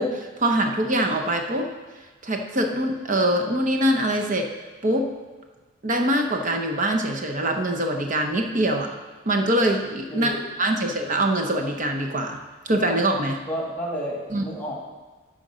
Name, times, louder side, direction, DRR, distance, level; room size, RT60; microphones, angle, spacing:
voice 1, 0.0-1.7 2.2-4.5 4.8-5.1 5.8-8.9 9.3-13.4 14.3-14.4, right 1 dB, 40° right, 4 dB, 0.8 m, -23 dB
voice 2, 10.1-10.4 13.4-14.7, equal, 10° left, -2 dB, 2.1 m, -31 dB
13.5 x 5.2 x 5.0 m, 1.3 s
head